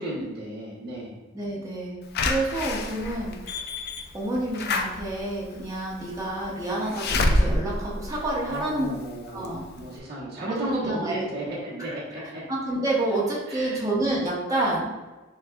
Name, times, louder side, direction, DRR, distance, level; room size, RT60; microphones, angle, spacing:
voice 1, 0.0-1.2 8.4-12.4 13.5-13.8, right 1 dB, 50° right, -8 dB, 1.1 m, -34 dB
voice 2, 1.3-3.6 4.1-8.9 9.3-9.6 10.5-11.2 12.2-14.9, right 2 dB, 15° right, -6 dB, 0.9 m, -29 dB
Slam / Alarm, 2.2-9.0 9.4-9.5 9.8-9.9, left 2 dB, 50° left, 0.4 m, -28 dB
6.5 x 2.3 x 2.2 m, 1.2 s
head